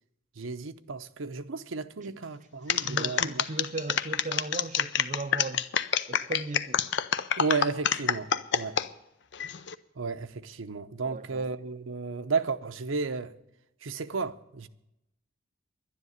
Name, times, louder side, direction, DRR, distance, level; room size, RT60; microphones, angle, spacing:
voice 1, 0.4-3.4 7.4-8.8 10.0-13.3 13.8-14.7, right 4 dB, 75° right, 0.7 m, -33 dB
sound 1, 2.7-8.9 9.3-9.7, left 8 dB, 60° left, 0.6 m, -27 dB
voice 2, 2.8-5.7 6.1-6.8 11.0-11.5, right 3 dB, 35° right, 0.5 m, -37 dB
11.5 x 10.0 x 7.9 m
head